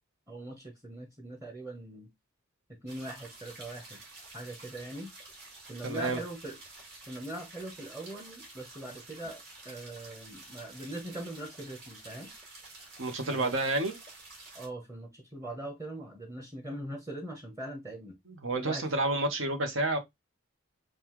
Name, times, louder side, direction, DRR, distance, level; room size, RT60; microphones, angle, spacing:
voice 1, 0.3-2.1 2.7-4.0 4.3-5.1 5.7-6.6 7.1-12.3 13.2-13.5 14.5-18.2 18.5-18.9, right 1 dB, 15° right, 0.8 m, -41 dB
sound 1, 2.9-14.7, right 2 dB, 50° right, 2.0 m, -50 dB
voice 2, 5.8-6.2 13.0-14.0 18.4-20.0, right 2 dB, 75° right, 1.1 m, -29 dB
5.5 x 2.4 x 3.0 m
head